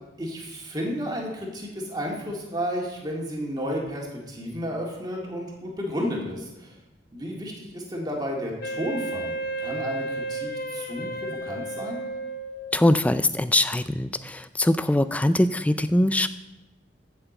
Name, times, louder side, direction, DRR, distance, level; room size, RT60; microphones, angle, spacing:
voice 1, 0.2-6.8 7.1-12.0, equal, 25° right, -2 dB, 2.0 m, -32 dB
Wind instrument woodwind instrument, 8.6-12.9, right 2 dB, 55° left, 0.8 m, -32 dB
voice 2, 12.7-16.3, left 1 dB, 10° left, 12 dB, 0.3 m, -22 dB
8.0 x 5.9 x 7.9 m, 0.98 s
head